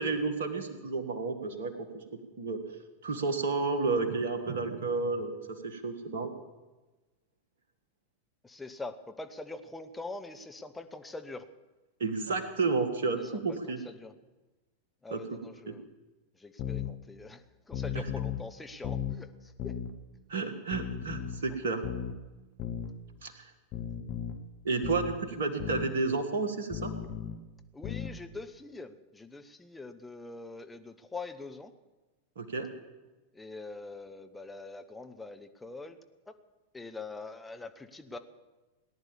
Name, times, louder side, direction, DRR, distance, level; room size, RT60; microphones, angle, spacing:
voice 1, 0.0-1.9 2.4-2.6 3.0-6.3 12.0-13.8 15.1-15.2 15.7-15.8 17.9-18.1 20.3-21.8 23.2-23.5 24.6-26.9 32.4-32.7, right 4 dB, 60° right, 7 dB, 1.9 m, -31 dB
voice 2, 8.4-11.4 13.5-13.6 13.8-14.1 15.0-15.9 16.4-17.4 17.7-19.8 27.7-31.7 33.3-36.0 36.3-36.4 36.7-38.2, left 3 dB, 10° left, 6 dB, 1.1 m, -43 dB
sound 1, 16.6-16.9 17.7-18.4 18.8-19.2 19.6-19.9 20.7-21.4 21.8-22.2 22.6-22.9 23.7-24.4 24.8-25.2 25.6-25.9 26.7-27.4 27.8-28.2, left 9 dB, 40° left, 1.4 m, -35 dB
18.5 x 10.0 x 7.2 m, 1.2 s
figure-of-eight pair, 90°, 0 cm